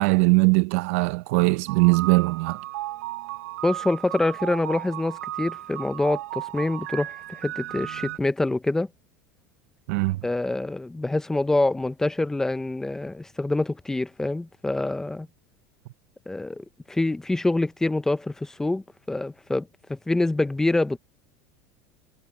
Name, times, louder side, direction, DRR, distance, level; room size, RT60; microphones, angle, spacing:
voice 1, 0.0-2.6 9.9-10.2, right 25 dB, 70° right, 0.7 m, -20 dB
sound 1, 1.7-8.2, right 15 dB, 85° right, 1.1 m, -35 dB
voice 2, 3.6-8.9 10.2-15.3 16.3-21.0, left 2 dB, 5° left, 0.7 m, -26 dB
supercardioid pair, 145°, 8 cm